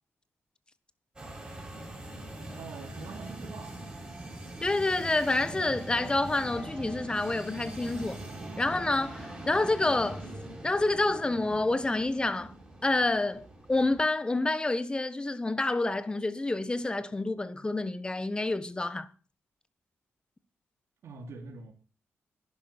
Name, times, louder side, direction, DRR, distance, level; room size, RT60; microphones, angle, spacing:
sound 1, 1.2-14.0, right 1 dB, 20° right, 6.8 m, -42 dB
voice 1, 2.6-4.2 21.0-21.7, right 4 dB, 80° right, 2.7 m, -45 dB
voice 2, 4.6-8.2 8.6-10.3 10.6-12.5 12.8-19.1, left 2 dB, 20° left, 1.3 m, -28 dB
11.5 x 10.5 x 6.8 m
cardioid pair, 100°, 5 cm